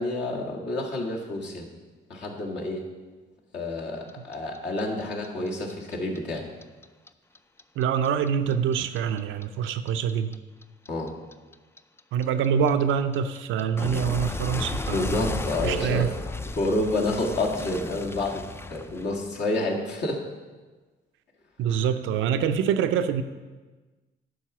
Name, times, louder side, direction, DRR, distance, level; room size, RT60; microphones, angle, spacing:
voice 1, 0.0-1.7 2.1-2.9 3.5-6.5 10.9-11.1 14.9-16.1 16.6-18.4 18.7-20.2, left 2 dB, 60° left, -2 dB, 1.9 m, -29 dB
Clock, 4.1-7.1 7.4-10.3 10.6-19.5, left 2 dB, 10° left, 0.4 m, -34 dB
voice 2, 7.8-10.3 12.1-16.1 21.6-23.2, right 8 dB, 80° right, 9 dB, 0.6 m, -25 dB
10.5 x 4.0 x 6.0 m, 1.3 s
cardioid pair, 90°, 20 cm